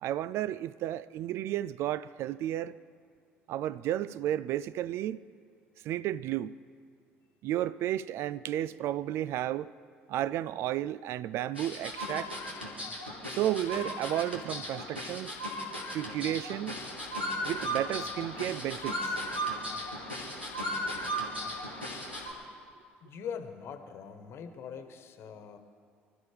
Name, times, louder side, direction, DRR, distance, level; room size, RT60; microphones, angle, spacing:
voice 1, 0.0-2.7 3.5-5.2 5.8-6.6 7.4-9.7 10.1-12.3 13.3-15.4 15.9-16.8 17.4-19.2, right 12 dB, 50° right, 0.3 m, -32 dB
sound 1, 11.6-22.3, equal, 90° right, 2.1 m, -36 dB
voice 2, 23.0-25.6, left 7 dB, 45° left, 1.3 m, -42 dB
25.0 x 13.5 x 3.4 m
figure-of-eight pair, 55°, 6 cm